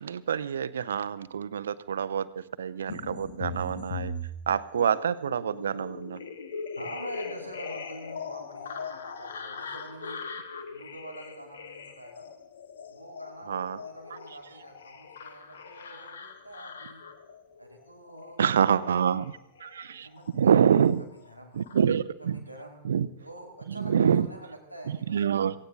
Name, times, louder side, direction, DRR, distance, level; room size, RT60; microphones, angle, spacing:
voice 1, 0.0-2.3 2.6-4.1 4.5-6.2 13.5-13.8 18.4-19.3 19.6-20.1 20.3-21.0 21.5-22.4 22.8-23.1 23.8-24.3 25.1-25.5, right 8 dB, 65° right, 16 dB, 0.6 m, -26 dB
sound 1, 2.9-20.6 20.9-21.8, left 4 dB, 65° left, 1.1 m, -40 dB
voice 2, 6.7-10.3 10.7-12.3 12.9-17.1 17.6-19.3 19.9-21.6 22.2-22.9 23.2-25.3, right 1 dB, 90° left, 2 dB, 2.6 m, -46 dB
17.5 x 16.5 x 3.9 m, 0.78 s
figure-of-eight pair, 90°, 0 cm